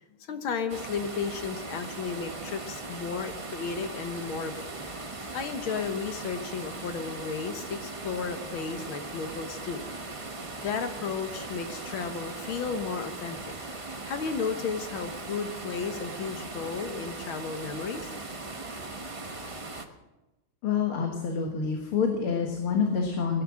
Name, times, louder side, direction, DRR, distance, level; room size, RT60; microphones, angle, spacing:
voice 1, 0.3-4.7 5.3-9.8 10.6-13.4 14.0-18.1, left 5 dB, 75° left, 7 dB, 2.0 m, -33 dB
sound 1, 0.7-19.9, right 2 dB, 30° right, 0.6 m, -39 dB
voice 2, 20.6-23.4, left 6 dB, 90° left, 2 dB, 2.5 m, -27 dB
18.0 x 11.0 x 6.2 m, 1.1 s
omnidirectional pair, 2.3 m